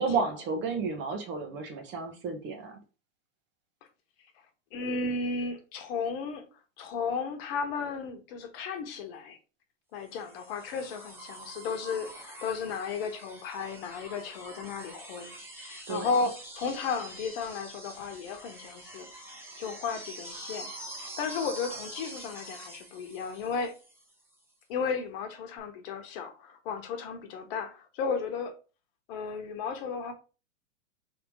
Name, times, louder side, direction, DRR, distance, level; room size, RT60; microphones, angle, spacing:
voice 1, 0.0-2.8 15.9-16.1, right 4 dB, 30° right, 0.9 m, -32 dB
voice 2, 4.7-6.4 6.8-9.4 9.9-19.1 19.6-20.7 21.2-23.7 24.7-28.5 29.1-30.1, left 5 dB, 50° left, 1.2 m, -34 dB
sound 1, 10.1-24.1 25.6-25.7, right 1 dB, 5° right, 1.0 m, -45 dB
3.5 x 2.9 x 4.7 m
hypercardioid pair, 120°, 38 cm